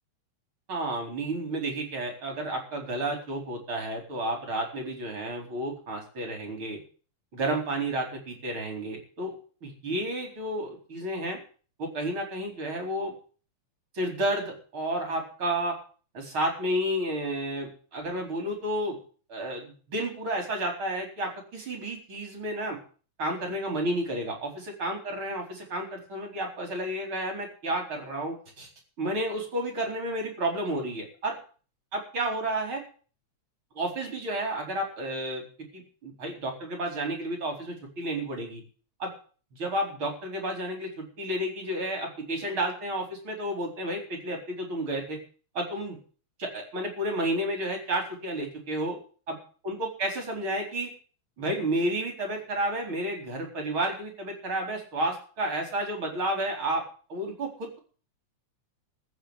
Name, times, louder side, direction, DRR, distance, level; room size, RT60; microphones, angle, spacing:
voice 1, 0.7-6.8 7.3-9.3 9.6-11.4 11.8-13.1 13.9-15.8 16.1-19.0 19.3-22.8 23.2-24.5 24.8-28.7 29.0-31.4 31.9-32.8 33.7-35.4 35.7-38.6 39.0-39.1 39.5-45.2 45.5-46.0 46.4-49.0 49.3-49.4 49.6-50.9 51.4-56.8 57.1-57.8, right 1 dB, 45° right, 2 dB, 4.9 m, -31 dB
14.5 x 6.4 x 9.7 m, 0.40 s
omnidirectional pair, 3.4 m